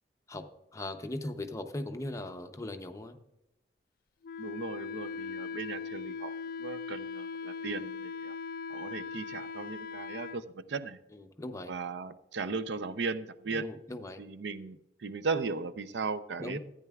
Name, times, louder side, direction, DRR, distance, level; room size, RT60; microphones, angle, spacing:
voice 1, 0.7-3.2 11.1-11.7 13.6-14.2 16.4-16.6, left 1 dB, 20° left, 6 dB, 0.6 m, -39 dB
Wind instrument woodwind instrument, 4.2-10.4, left 5 dB, 55° left, 0.3 m, -39 dB
voice 2, 4.4-6.3 6.6-8.3 8.7-11.0 11.7-13.7 14.2-16.6, right 4 dB, 75° right, 13 dB, 0.5 m, -37 dB
14.0 x 9.4 x 2.3 m, 0.89 s
head